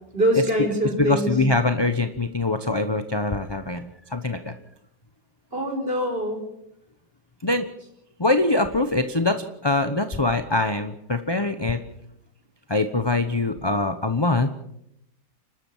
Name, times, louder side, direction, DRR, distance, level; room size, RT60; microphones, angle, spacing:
voice 1, 0.1-1.4 5.5-6.4, equal, 30° right, 2 dB, 5.2 m, -23 dB
voice 2, 1.0-4.6 7.4-7.7 8.2-11.8 12.7-14.5, left 2 dB, 20° left, 8 dB, 0.8 m, -23 dB
30.0 x 13.0 x 7.3 m, 0.78 s
omnidirectional pair, 2.0 m